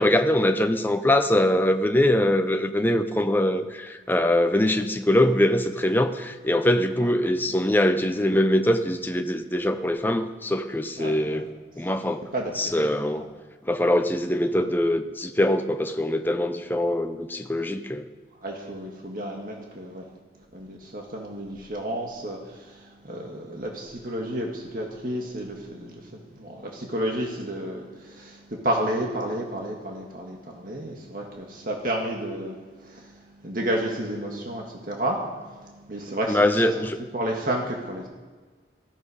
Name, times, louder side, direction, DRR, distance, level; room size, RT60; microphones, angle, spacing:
voice 1, 0.0-11.5 11.8-12.2 12.6-13.2 13.6-18.1 36.3-37.0, left 1 dB, 10° left, 7 dB, 0.8 m, -23 dB
voice 2, 11.0-11.4 12.3-12.7 14.6-14.7 18.4-20.1 20.5-35.2 35.6-36.7 37.1-38.1, right 1 dB, 50° right, 0 dB, 1.9 m, -31 dB
17.0 x 14.5 x 5.0 m, 1.4 s
head